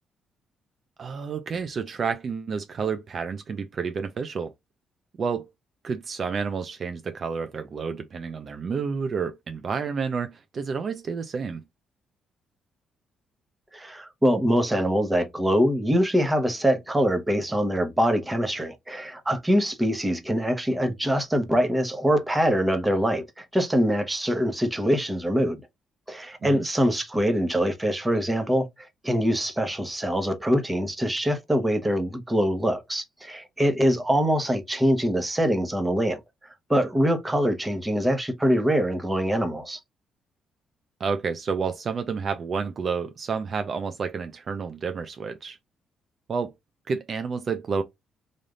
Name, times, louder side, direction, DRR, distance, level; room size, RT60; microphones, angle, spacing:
voice 1, 1.0-4.5 5.2-5.5 5.8-11.6 26.4-26.6 41.0-45.6 46.3-46.5 46.9-47.8, right 5 dB, 50° right, 0.5 m, -30 dB
voice 2, 13.7-25.6 26.1-36.2 36.7-39.8, equal, 15° right, 1.1 m, -24 dB
3.4 x 2.6 x 3.7 m
cardioid pair, 90°, 0 cm